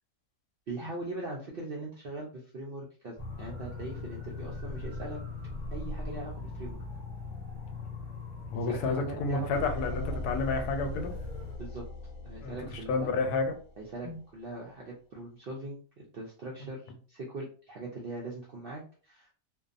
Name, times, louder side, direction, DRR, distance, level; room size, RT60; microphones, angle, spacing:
voice 1, 0.7-5.2 5.7-6.8 8.5-9.5 11.6-11.9 12.2-13.1 13.8-19.3, right 2 dB, 70° right, -3 dB, 0.5 m, -41 dB
sound 1, 3.2-11.6, left 2 dB, 10° left, 1.1 m, -40 dB
voice 2, 8.5-11.1 12.4-12.6 12.9-13.6 14.0-14.2, left 3 dB, 85° left, 6 dB, 1.1 m, -30 dB
sound 2, 9.5-14.3, left 2 dB, 65° left, 1.0 m, -40 dB
2.7 x 2.2 x 2.4 m, 0.42 s
omnidirectional pair, 1.6 m